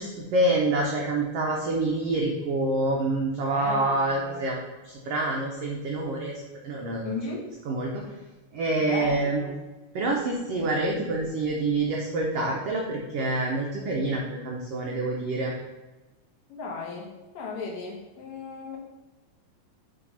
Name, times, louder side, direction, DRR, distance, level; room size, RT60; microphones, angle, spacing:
voice 1, 0.0-7.2 7.7-8.0 8.5-9.4 9.9-15.5, right 2 dB, 80° right, -1 dB, 1.3 m, -27 dB
voice 2, 3.5-4.4 7.0-7.5 8.8-9.5 16.5-17.1 17.3-18.8, left 4 dB, 65° left, -2 dB, 2.4 m, -35 dB
7.4 x 3.4 x 5.5 m, 1.1 s
omnidirectional pair, 3.8 m